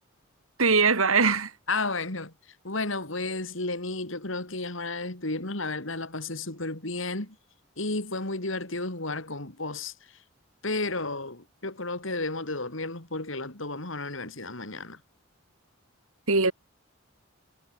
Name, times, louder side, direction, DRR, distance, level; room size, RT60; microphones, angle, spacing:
voice 1, 0.6-1.5 16.3-16.5, right 4 dB, 85° right, 3.2 m, -21 dB
voice 2, 1.7-2.3 2.6-7.4 7.8-9.9 10.6-15.0, left 2 dB, 65° left, 3.6 m, -32 dB
head